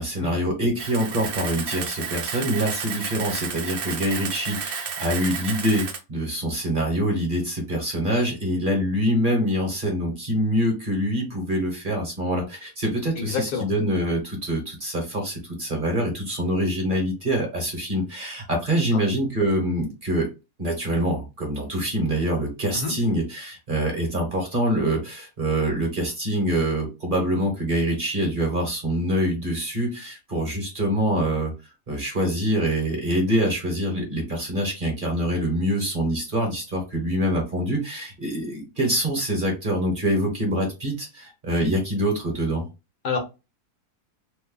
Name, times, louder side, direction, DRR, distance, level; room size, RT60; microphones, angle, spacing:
voice 1, 0.0-20.3 20.6-31.5 31.9-42.7, equal, 35° right, 1 dB, 1.0 m, -25 dB
Camera, 0.8-6.0, right 6 dB, 85° right, 0.5 m, -32 dB
voice 2, 13.2-13.7 22.7-22.9 43.0-43.2, left 5 dB, 75° left, 2 dB, 1.5 m, -27 dB
3.2 x 2.1 x 3.7 m, 0.27 s
omnidirectional pair, 1.7 m